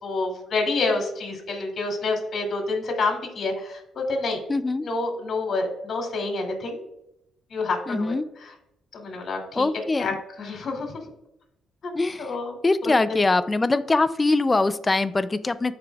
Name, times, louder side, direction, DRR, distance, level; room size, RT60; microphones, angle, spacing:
voice 1, 0.0-4.4 4.8-6.9 7.5-8.1 8.4-8.5 8.9-9.7 10.0-10.1 10.4-10.9 11.8-11.9 12.2-12.6 12.8-13.2, left 3 dB, 55° left, 2 dB, 2.7 m, -28 dB
voice 2, 4.5-4.8 7.9-8.3 9.5-10.1 11.9-12.3 12.6-15.7, left 3 dB, 20° left, 13 dB, 0.4 m, -22 dB
14.0 x 5.1 x 2.4 m, 0.83 s
cardioid pair, 90°, 0 cm